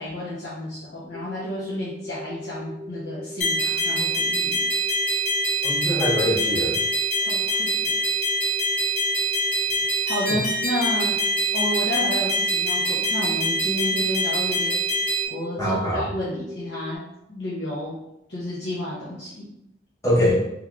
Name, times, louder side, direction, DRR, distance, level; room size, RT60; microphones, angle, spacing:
voice 1, 0.0-4.6 7.2-8.0 10.0-11.2 11.5-14.8 15.3-17.0 17.3-18.0 18.3-19.5, equal, 65° left, -8 dB, 0.7 m, -31 dB
sound 1, 1.1-17.0, left 1 dB, 20° right, 0.4 m, -39 dB
sound 2, 3.4-15.3, right 1 dB, 40° left, 1.1 m, -24 dB
voice 2, 5.6-6.8 15.6-16.0 20.0-20.4, equal, 15° left, -6 dB, 0.8 m, -22 dB
3.6 x 3.1 x 2.3 m, 0.82 s
head